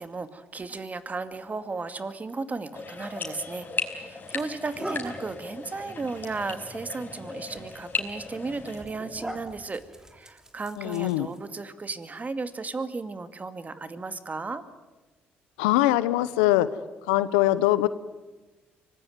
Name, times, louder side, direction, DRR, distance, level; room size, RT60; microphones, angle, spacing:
voice 1, 0.0-9.8 10.1-14.6, right 3 dB, 30° right, 10 dB, 2.3 m, -35 dB
sound 1, 2.7-8.8, left 4 dB, 40° left, 4.9 m, -36 dB
sound 2, 3.4-3.6 4.2-11.6, right 1 dB, 10° right, 3.3 m, -43 dB
voice 2, 10.8-11.3 15.6-16.7 17.1-17.9, left 16 dB, 90° left, 16 dB, 0.9 m, -22 dB
25.0 x 19.5 x 9.5 m, 1.2 s
hypercardioid pair, 55°, 5 cm